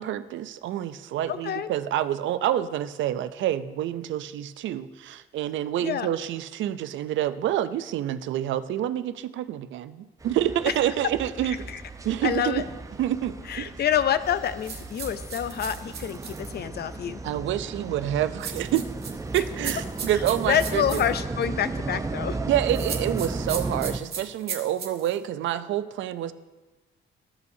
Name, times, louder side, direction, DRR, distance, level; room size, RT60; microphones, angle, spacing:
voice 1, 0.0-11.7 12.0-12.6 13.0-13.7 17.2-18.9 19.3-21.0 22.5-26.3, right 11 dB, 75° right, 12 dB, 0.4 m, -28 dB
voice 2, 1.3-1.7 5.8-6.1 11.7-11.8 12.2-12.6 13.5-17.2 20.5-22.4, left 9 dB, 55° left, 13 dB, 0.5 m, -27 dB
sound 1, 10.2-24.0, right 3 dB, 15° right, 0.5 m, -35 dB
sound 2, 14.6-16.5 18.4-21.1 22.7-25.2, right 6 dB, 55° right, 1.3 m, -36 dB
15.0 x 5.4 x 2.7 m, 1.2 s
cardioid pair, 90°, 20 cm